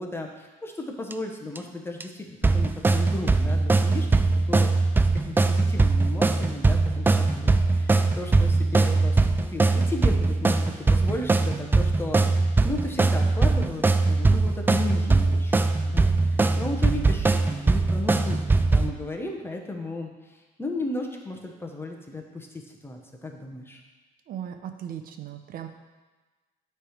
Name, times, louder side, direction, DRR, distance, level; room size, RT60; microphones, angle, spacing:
voice 1, 0.0-4.1 4.3-4.7 5.0-9.2 9.5-12.2 12.6-15.6 15.9-22.5 22.8-23.8, left 2 dB, 15° left, 2 dB, 0.9 m, -35 dB
sound 1, 1.1-1.2 1.5-1.6 2.0-2.1 2.4-18.9, right 3 dB, 10° right, 0.3 m, -21 dB
voice 2, 24.3-25.7, right 10 dB, 60° right, 6 dB, 0.7 m, -37 dB
8.9 x 3.4 x 4.9 m, 1.3 s
cardioid pair, 110°, 17 cm